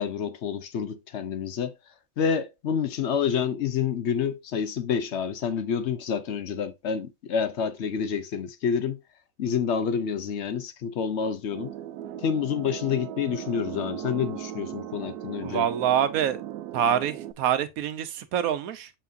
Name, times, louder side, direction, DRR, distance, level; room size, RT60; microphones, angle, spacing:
voice 1, 0.0-1.7 2.2-9.0 9.4-11.7 12.2-15.7, left 7 dB, 55° left, 0.9 m, -28 dB
sound 1, 11.5-17.3, right 11 dB, 90° right, 1.1 m, -38 dB
voice 2, 15.4-16.4 16.7-18.9, right 9 dB, 70° right, 1.2 m, -26 dB
6.8 x 5.9 x 2.6 m
omnidirectional pair, 1.6 m